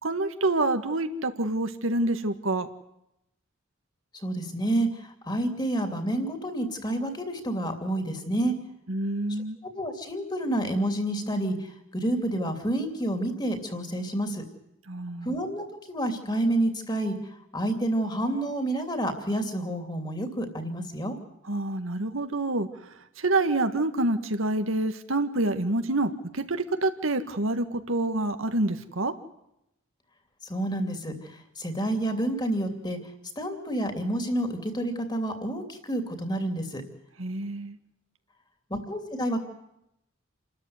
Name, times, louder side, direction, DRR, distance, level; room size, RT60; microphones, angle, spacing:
voice 1, 0.0-2.7 8.9-9.6 14.9-15.4 21.5-22.7 23.2-29.1 37.2-37.8, right 2 dB, 90° right, 8 dB, 1.8 m, -27 dB
voice 2, 4.2-8.5 9.7-14.4 15.2-17.1 17.5-21.1 30.4-33.0 33.4-36.8 38.7-39.4, right 1 dB, 20° left, 7 dB, 2.9 m, -29 dB
28.0 x 13.5 x 9.6 m, 0.83 s
head